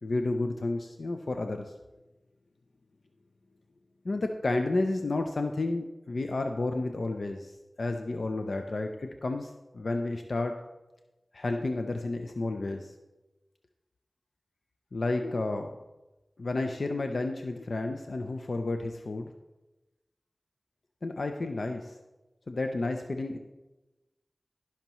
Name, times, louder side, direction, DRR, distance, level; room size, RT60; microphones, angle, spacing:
voice 1, 0.0-1.7 4.0-7.5 7.8-10.6 11.3-12.9 14.9-15.8 16.4-19.3 21.0-22.0 22.5-23.4, left 2 dB, 75° left, 5 dB, 0.5 m, -31 dB
16.5 x 5.8 x 3.0 m, 1.1 s
wide cardioid pair, 55°, 0 cm